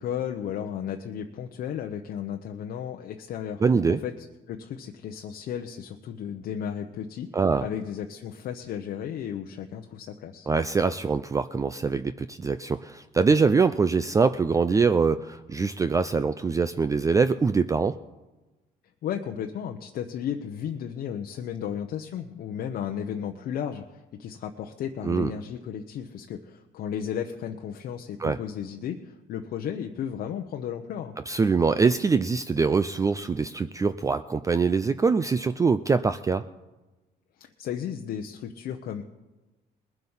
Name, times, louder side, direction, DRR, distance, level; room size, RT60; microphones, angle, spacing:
voice 1, 0.0-3.6 4.0-4.1 4.5-7.3 7.6-10.5 19.0-31.1 37.4-39.0, left 9 dB, 65° left, 4 dB, 0.9 m, -34 dB
voice 2, 3.6-4.0 7.3-7.7 10.5-18.0 25.0-25.3 28.2-28.4 31.3-36.4, right 5 dB, 20° right, 12 dB, 0.4 m, -23 dB
20.5 x 7.9 x 5.6 m, 1.1 s
cardioid pair, 110°, 17 cm